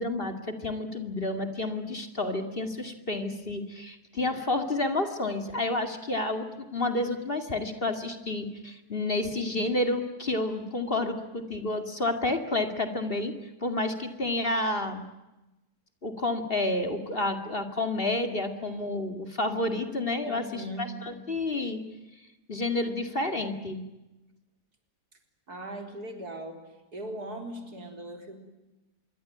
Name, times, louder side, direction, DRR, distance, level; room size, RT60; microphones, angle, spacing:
voice 1, 0.0-15.1 16.0-23.8, left 2 dB, 35° left, 6 dB, 2.6 m, -30 dB
voice 2, 20.2-21.0 25.5-26.7 26.9-28.4, right 1 dB, 70° right, 4 dB, 4.6 m, -39 dB
26.0 x 23.0 x 9.3 m, 1.0 s
omnidirectional pair, 1.7 m